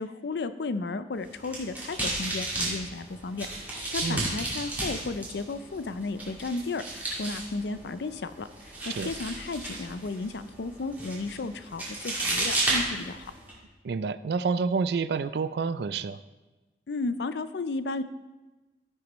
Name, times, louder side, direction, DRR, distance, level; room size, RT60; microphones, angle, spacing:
voice 1, 0.0-3.5 3.9-8.5 8.8-13.3 16.9-18.0, left 3 dB, 75° left, 12 dB, 0.5 m, -34 dB
sound 1, 1.2-13.5, right 2 dB, 10° right, 2.1 m, -34 dB
voice 2, 13.8-16.2, right 5 dB, 70° right, 14 dB, 0.4 m, -28 dB
14.5 x 6.2 x 3.0 m, 1.2 s
head